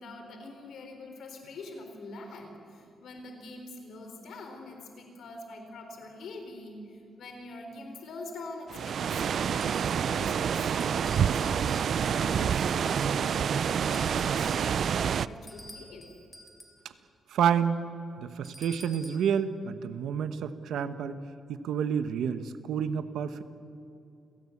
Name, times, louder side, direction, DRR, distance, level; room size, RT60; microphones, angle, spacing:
voice 1, 0.0-16.1, left 2 dB, 75° left, 5 dB, 4.0 m, -44 dB
sound 1, 8.7-15.3, right 7 dB, 60° right, 0.5 m, -27 dB
sound 2, 10.8-12.2 12.8-13.5 13.9-16.9 18.4-19.3, equal, ahead, 3.3 m, -51 dB
voice 2, 17.3-17.8 18.2-21.1 21.5-23.4, right 8 dB, 90° right, 11 dB, 1.2 m, -29 dB
29.0 x 17.5 x 8.5 m, 2.6 s
cardioid pair, 115°, 0 cm